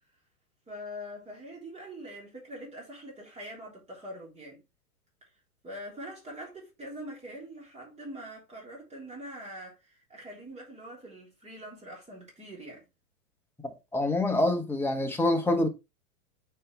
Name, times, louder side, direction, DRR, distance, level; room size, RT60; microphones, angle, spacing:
voice 1, 0.7-4.6 5.6-12.8, equal, 15° right, 3.6 m, -43 dB
voice 2, 13.9-15.7, left 2 dB, 5° left, 1.1 m, -25 dB
6.7 x 5.2 x 3.3 m
hypercardioid pair, 125°, 45 cm